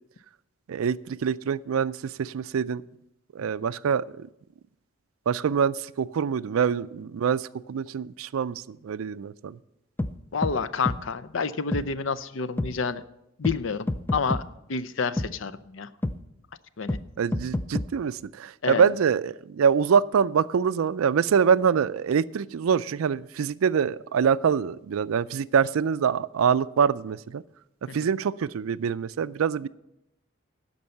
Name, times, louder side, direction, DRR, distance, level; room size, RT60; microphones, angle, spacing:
voice 1, 0.7-2.8 3.3-4.3 5.3-9.6 17.2-27.4 27.9-29.7, right 7 dB, 85° right, 18 dB, 0.4 m, -25 dB
sound 1, 10.0-10.1 10.4-10.6 10.8-11.0 11.7-11.8 12.6-12.7 13.4-13.6 13.9-14.4 15.2-15.3 16.0-16.2 16.9-17.0 17.3-17.9, left 1 dB, 10° left, 0.4 m, -27 dB
voice 2, 10.3-13.0 13.4-14.4 14.7-15.9 16.8-17.0 18.6-18.8 27.9-28.1, left 5 dB, 65° left, 15 dB, 0.5 m, -29 dB
12.5 x 5.4 x 7.8 m, 0.85 s
head